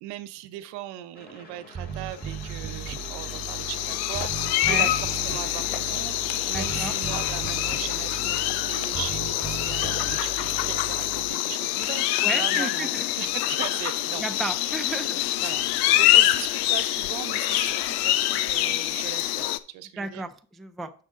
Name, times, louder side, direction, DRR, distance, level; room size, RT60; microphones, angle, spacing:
voice 1, 0.0-12.9 13.2-14.6 15.4-15.6 16.0-20.3, right 13 dB, 80° right, 11 dB, 0.8 m, -38 dB
sound 1, 1.1-16.3, left 2 dB, 25° left, 1.9 m, -50 dB
Bass guitar, 1.7-11.3, right 8 dB, 20° right, 0.9 m, -37 dB
sound 2, 2.3-19.6, left 14 dB, 75° left, 0.6 m, -25 dB
voice 2, 6.5-6.9 12.2-13.1 14.2-15.3 20.0-20.9, right 3 dB, ahead, 7 dB, 0.3 m, -33 dB
7.4 x 6.2 x 3.7 m, 0.42 s
cardioid pair, 115°, 38 cm